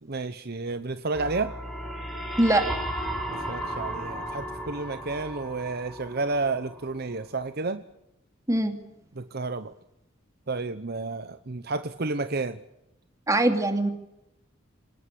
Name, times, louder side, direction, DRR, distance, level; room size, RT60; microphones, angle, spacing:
voice 1, 0.0-1.6 3.3-7.8 9.2-9.7 10.5-12.6, right 3 dB, 50° right, 11 dB, 0.9 m, -31 dB
sound 1, 1.1-7.0, right 1 dB, ahead, 5.0 m, -35 dB
voice 2, 13.3-13.9, right 1 dB, 15° right, 6 dB, 2.6 m, -22 dB
26.0 x 19.0 x 8.4 m, 0.87 s
head